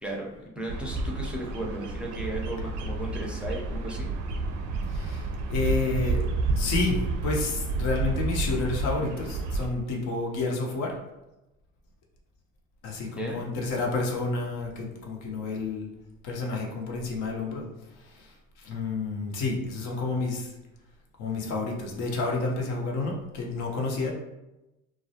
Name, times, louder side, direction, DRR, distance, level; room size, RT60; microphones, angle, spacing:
voice 1, 0.0-4.1 13.1-13.4, right 1 dB, 5° right, -2 dB, 0.5 m, -35 dB
Bird vocalization bird call bird song, 0.7-9.7, right 3 dB, 70° right, 0.5 m, -30 dB
voice 2, 4.8-6.2 6.6-10.9 12.8-15.9 16.2-20.5 21.2-24.1, left 3 dB, 70° left, 0 dB, 0.7 m, -30 dB
2.3 x 2.0 x 2.7 m, 0.96 s
supercardioid pair, 80°, 32 cm